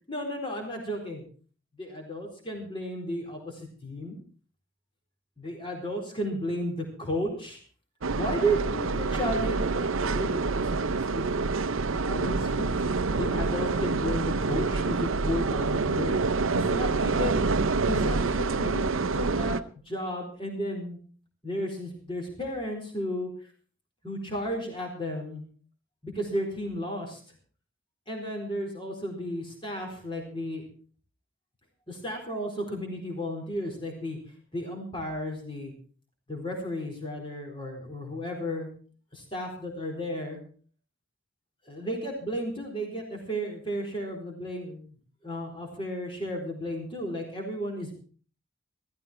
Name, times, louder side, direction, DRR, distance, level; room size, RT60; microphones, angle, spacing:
voice 1, 0.1-1.2 1.8-4.2 5.4-7.6 8.1-11.5 12.0-16.2 16.5-17.4 17.9-19.6 19.9-21.0 21.4-23.3 24.0-25.4 26.0-27.2 28.1-30.6 31.9-34.2 34.5-35.7 36.3-38.7 39.1-40.4 41.7-45.0 45.2-47.9, equal, 25° left, 1 dB, 4.1 m, -33 dB
sound 1, 8.0-19.6, right 3 dB, 85° right, 0.7 m, -27 dB
15.5 x 14.5 x 4.4 m, 0.41 s
head